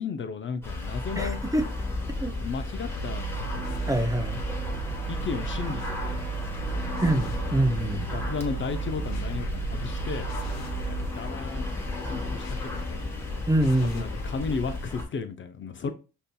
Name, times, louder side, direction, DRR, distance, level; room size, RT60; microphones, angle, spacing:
voice 1, 0.0-1.4 2.4-3.8 5.1-6.2 6.7-6.9 8.1-10.3 10.9-13.1 13.9-15.9, left 5 dB, 40° left, 0.5 m, -34 dB
sound 1, 0.6-15.0, left 2 dB, 10° left, 1.1 m, -34 dB
voice 2, 1.2-1.6 2.2-2.4 3.9-4.4 7.0-8.1 13.5-14.2, right 1 dB, 10° right, 0.6 m, -25 dB
sound 2, 1.6-14.7, left 3 dB, 60° left, 0.9 m, -44 dB
sound 3, 2.9-11.1, right 10 dB, 55° right, 0.6 m, -35 dB
5.5 x 2.6 x 2.2 m
cardioid pair, 90°, 30 cm